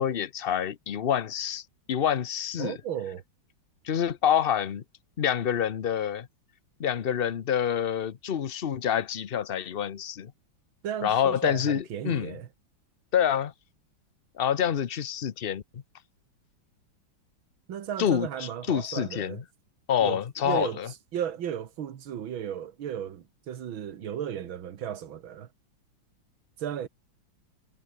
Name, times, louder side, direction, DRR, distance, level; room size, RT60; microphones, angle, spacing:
voice 1, 0.0-1.6 1.9-2.7 3.8-4.8 5.2-6.3 6.8-10.3 11.0-12.4 13.1-13.5 14.4-15.8 18.0-19.4 19.9-20.9, left 9 dB, 65° left, 0.5 m, -27 dB
voice 2, 2.6-3.2 10.8-12.5 17.7-19.4 20.0-20.8 21.1-25.5 26.6-26.9, right 9 dB, 75° right, 2.2 m, -35 dB
omnidirectional pair, 2.2 m